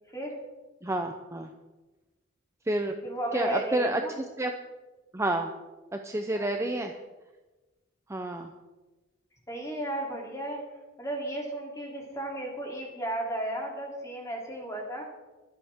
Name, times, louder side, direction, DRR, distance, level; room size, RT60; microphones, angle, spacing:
voice 1, 0.8-1.5 2.7-2.9 3.3-4.5 5.1-5.5 5.9-6.9 8.1-8.5, right 1 dB, 15° right, 4 dB, 0.7 m, -29 dB
voice 2, 3.0-4.2 6.3-6.5 9.5-10.6 11.0-15.0, right 1 dB, 15° left, -1 dB, 3.1 m, -34 dB
23.5 x 8.4 x 3.6 m, 1.2 s
head